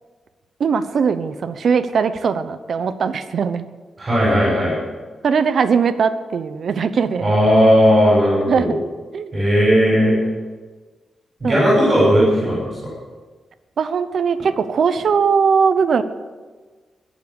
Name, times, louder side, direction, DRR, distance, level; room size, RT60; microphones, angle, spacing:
voice 1, 0.6-3.7 5.2-7.3 8.5-8.8 9.1-9.3 11.4-11.6 13.8-16.0, right 6 dB, 55° right, 11 dB, 0.9 m, -19 dB
voice 2, 4.0-4.8 7.2-8.7 9.3-10.2 11.4-12.9, equal, 25° right, -6 dB, 6.1 m, -16 dB
22.0 x 7.5 x 7.1 m, 1.4 s
wide cardioid pair, 160°, 0 cm